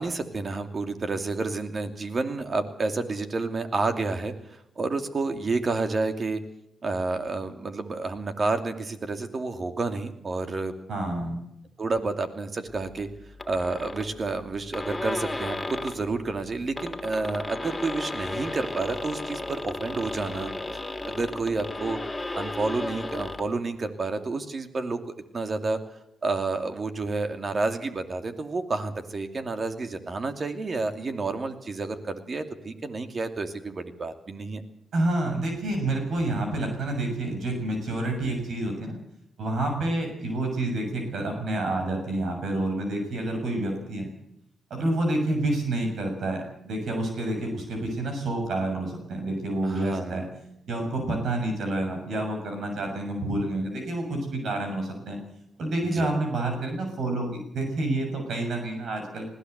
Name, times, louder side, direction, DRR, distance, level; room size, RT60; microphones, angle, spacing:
voice 1, 0.0-6.4 6.8-10.7 11.8-13.1 13.5-20.5 21.1-22.0 22.3-25.8 26.2-34.6 49.6-50.3 55.9-56.1, right 3 dB, 45° right, 7 dB, 2.6 m, -30 dB
voice 2, 10.9-11.4 34.9-39.0 39.4-44.1 44.7-50.3 50.7-55.2 55.6-59.3, right 2 dB, 70° right, 4 dB, 6.9 m, -28 dB
sound 1, 13.4-14.1 14.5-14.6 14.7-16.0 16.6-23.5, left 2 dB, 20° left, 3.3 m, -34 dB
20.5 x 16.0 x 8.1 m, 0.78 s
supercardioid pair, 60°, 0 cm